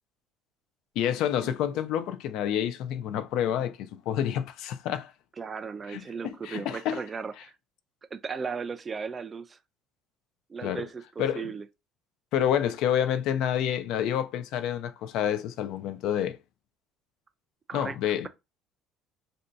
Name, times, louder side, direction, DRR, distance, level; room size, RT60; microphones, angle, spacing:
voice 1, 1.0-5.1 5.9-7.0 10.6-10.9 11.2-11.5 12.3-16.4 17.7-18.3, left 10 dB, 65° left, 0.4 m, -28 dB
voice 2, 5.4-7.5 8.1-9.6 10.5-11.7 17.7-18.0, right 5 dB, 25° right, 0.3 m, -36 dB
2.6 x 2.2 x 3.8 m
cardioid pair, 135°, 0 cm